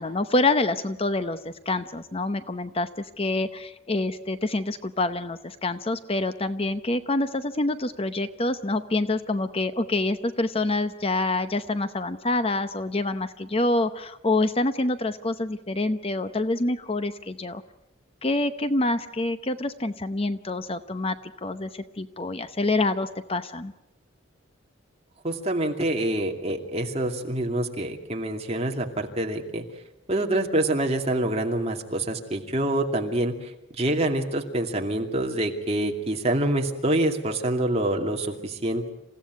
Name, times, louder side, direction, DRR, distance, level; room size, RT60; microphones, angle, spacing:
voice 1, 0.0-17.6 18.2-21.1 21.4-23.7, left 2 dB, 30° left, 10 dB, 0.8 m, -26 dB
voice 2, 25.2-29.6 30.1-33.5 33.8-38.9, right 1 dB, 30° right, 2 dB, 2.5 m, -26 dB
28.0 x 16.0 x 9.4 m, 0.93 s
head